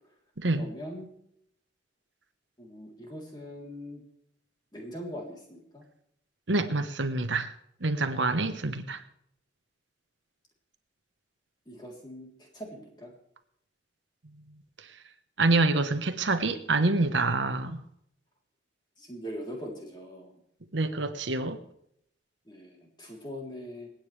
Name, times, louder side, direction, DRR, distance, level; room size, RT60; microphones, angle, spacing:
voice 1, 0.5-1.1 2.6-4.0 4.7-5.8 11.7-13.1 19.0-20.3 22.5-23.9, equal, 25° left, -1 dB, 3.5 m, -41 dB
voice 2, 6.5-7.5 7.8-9.0 15.4-17.8 20.7-21.6, right 3 dB, 90° right, 9 dB, 1.2 m, -26 dB
26.5 x 9.1 x 3.4 m, 0.72 s
head